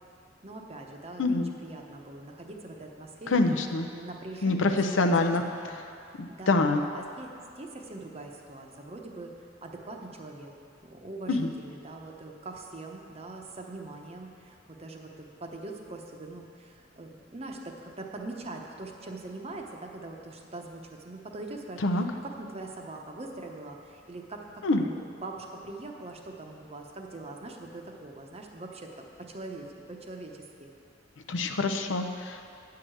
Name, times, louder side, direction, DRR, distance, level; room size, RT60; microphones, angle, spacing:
voice 1, 0.4-3.4 3.7-5.1 5.5-6.7 6.9-9.3 9.6-10.5 10.8-28.9 29.2-30.7, right 2 dB, 35° right, 2 dB, 0.8 m, -42 dB
voice 2, 3.3-3.9 4.4-5.4 6.2-6.8 11.3-11.5 21.8-22.1 24.6-24.8 31.3-32.5, left 2 dB, 85° left, 5 dB, 0.7 m, -25 dB
9.2 x 4.8 x 7.7 m, 2.4 s
head